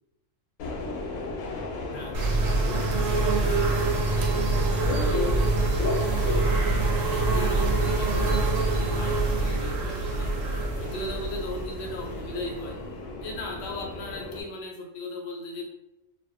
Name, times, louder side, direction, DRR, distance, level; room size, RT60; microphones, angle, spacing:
Subway metro underground, 0.6-14.4, left 3 dB, 90° left, 1.0 m, -35 dB
sound 1, 2.1-12.8, right 3 dB, 85° right, 1.0 m, -25 dB
voice 1, 7.0-12.8 13.2-15.7, left 1 dB, 60° left, 0 dB, 0.8 m, -37 dB
2.4 x 2.2 x 2.5 m, 0.94 s
omnidirectional pair, 1.4 m